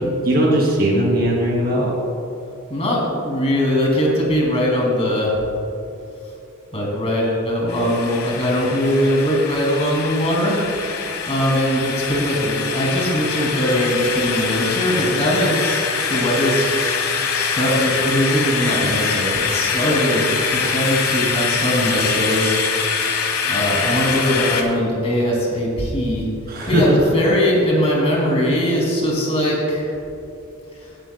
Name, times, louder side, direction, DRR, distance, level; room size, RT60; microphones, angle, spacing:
voice 1, 0.2-1.9 26.5-27.0, right 1 dB, 45° right, -3 dB, 2.6 m, -18 dB
voice 2, 2.7-5.4 6.7-16.8 17.3-22.6 23.4-26.3 26.7-29.9, equal, 30° left, -3 dB, 2.6 m, -20 dB
sound 1, 7.7-24.6, left 5 dB, 90° left, 1.2 m, -24 dB
17.0 x 10.0 x 2.3 m, 2.8 s
head